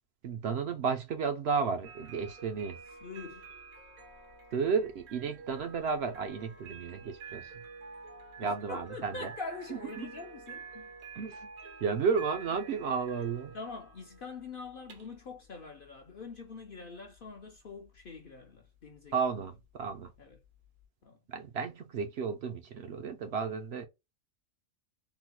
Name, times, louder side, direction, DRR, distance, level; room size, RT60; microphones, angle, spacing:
voice 1, 0.2-2.8 4.5-7.5 8.4-9.3 10.0-10.1 11.1-11.5 11.8-13.5 19.1-20.1 21.3-23.9, right 5 dB, 65° right, 0.7 m, -33 dB
sound 1, 1.8-20.8, right 4 dB, 90° right, 1.5 m, -50 dB
voice 2, 3.0-3.5 8.4-10.9 13.5-19.3 20.2-20.4 21.0-21.2, left 4 dB, 55° left, 0.6 m, -44 dB
3.8 x 2.1 x 2.8 m
omnidirectional pair, 1.4 m